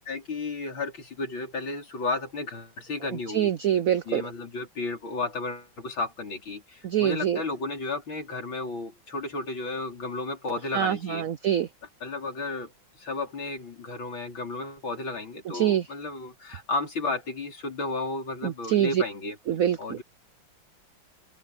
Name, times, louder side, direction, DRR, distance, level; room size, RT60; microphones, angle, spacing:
voice 1, 0.0-3.5 4.1-11.3 12.0-12.7 13.0-19.4 19.8-20.0, left 3 dB, 80° left, 5.5 m, -33 dB
voice 2, 3.3-4.2 6.8-7.4 10.7-11.7 15.5-15.8 18.4-19.0 19.5-20.0, right 11 dB, 85° right, 0.7 m, -25 dB
open air
omnidirectional pair, 2.1 m